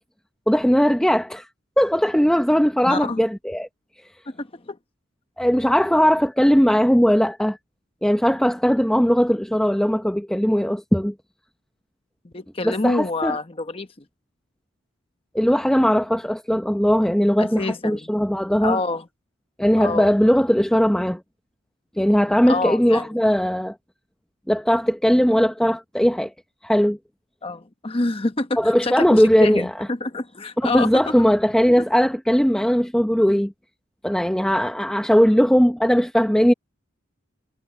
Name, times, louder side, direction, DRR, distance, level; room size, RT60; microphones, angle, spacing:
voice 1, 0.5-1.5 1.8-3.7 5.4-7.6 8.0-11.1 12.6-13.4 15.3-18.8 19.6-21.2 22.0-23.7 24.5-26.3 26.6-27.0 28.6-29.7 30.6-33.5 34.0-36.5, equal, 5° left, 0.7 m, -19 dB
voice 2, 2.9-3.2 4.3-4.8 12.2-13.9 17.4-18.1 18.6-19.1 19.8-20.1 22.5-23.1 27.4-31.1 31.8-31.9, left 2 dB, 30° left, 1.0 m, -27 dB
head